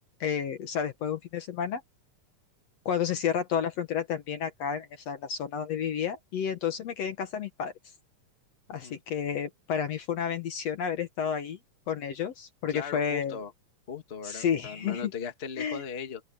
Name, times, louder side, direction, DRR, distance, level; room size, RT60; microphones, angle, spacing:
voice 1, 0.2-1.8 2.9-7.7 8.7-11.6 11.9-13.4 14.2-15.1 15.6-15.8, left 8 dB, 60° left, 2.1 m, -31 dB
voice 2, 12.7-13.5 13.9-16.2, left 6 dB, 25° left, 1.4 m, -38 dB
open air
omnidirectional pair, 3.7 m